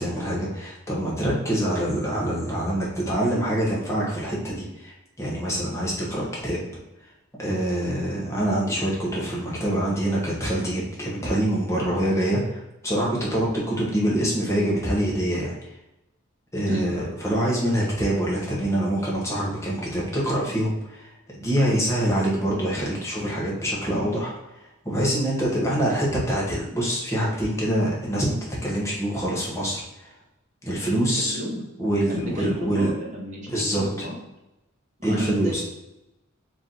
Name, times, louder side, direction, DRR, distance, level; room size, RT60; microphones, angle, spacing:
voice 1, 0.0-6.6 7.4-15.6 16.5-24.3 24.8-30.1 30.6-31.4 31.8-32.9 33.5-34.1 35.0-35.6, right 1 dB, 15° left, -5 dB, 1.0 m, -25 dB
voice 2, 31.2-31.6 32.1-34.2 35.1-35.6, left 1 dB, 35° right, -2 dB, 0.9 m, -31 dB
3.1 x 2.7 x 3.8 m, 0.94 s
head